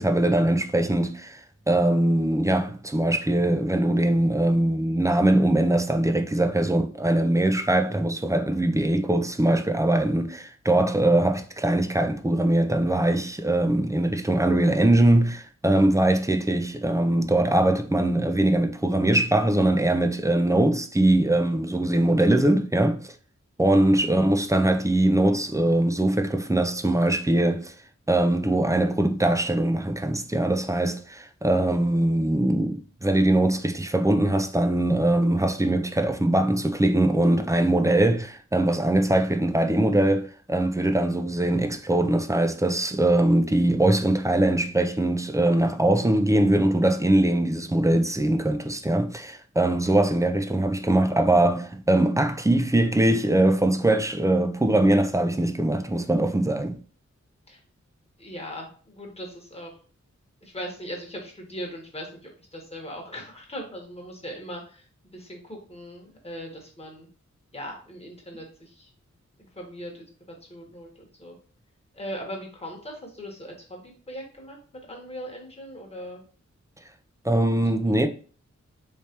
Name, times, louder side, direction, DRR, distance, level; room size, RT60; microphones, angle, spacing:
voice 1, 0.0-23.1 23.6-27.7 28.1-56.7 77.2-78.1, right 1 dB, 10° right, 0.4 m, -22 dB
voice 2, 58.2-59.7 60.4-67.1 67.5-68.9 69.5-71.4 71.9-76.3 77.7-78.1, equal, 20° left, 1.2 m, -39 dB
3.2 x 3.1 x 2.9 m
cardioid pair, 45°, 29 cm